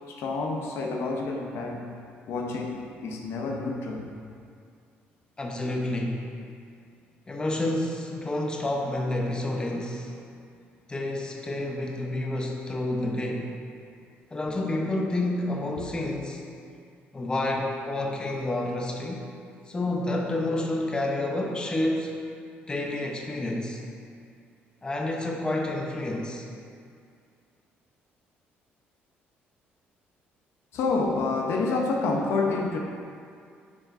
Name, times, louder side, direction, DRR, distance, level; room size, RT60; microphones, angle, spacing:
voice 1, 0.1-1.9 2.3-4.1 30.7-32.8, left 3 dB, 75° left, 1 dB, 0.8 m, -28 dB
voice 2, 5.4-6.3 7.3-10.1 10.9-13.5 14.3-16.4 17.1-19.2 19.7-22.1 22.7-23.8 24.8-26.4, left 1 dB, 20° left, 0 dB, 0.8 m, -29 dB
9.4 x 4.9 x 2.6 m, 2.3 s
cardioid pair, 100°, 4 cm